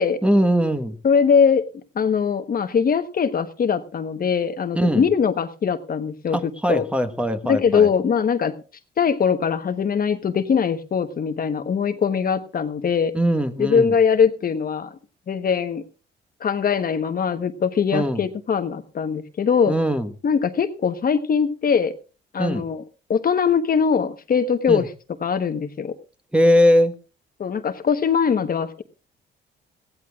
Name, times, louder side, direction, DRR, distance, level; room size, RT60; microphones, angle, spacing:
voice 1, 0.2-1.0 4.7-5.1 6.3-7.9 13.1-13.9 17.9-18.3 19.7-20.1 22.4-22.7 24.7-24.9 26.3-26.9, equal, 5° right, 7 dB, 1.3 m, -20 dB
voice 2, 1.0-1.6 1.9-6.4 6.7-6.8 7.5-8.5 9.0-13.1 13.6-14.9 15.3-15.8 16.4-19.7 20.2-21.9 22.3-22.8 23.1-24.9 25.2-25.9 27.4-28.8, left 6 dB, 45° left, 9 dB, 1.1 m, -21 dB
21.5 x 15.5 x 2.4 m, 0.34 s
cardioid pair, 90°, 20 cm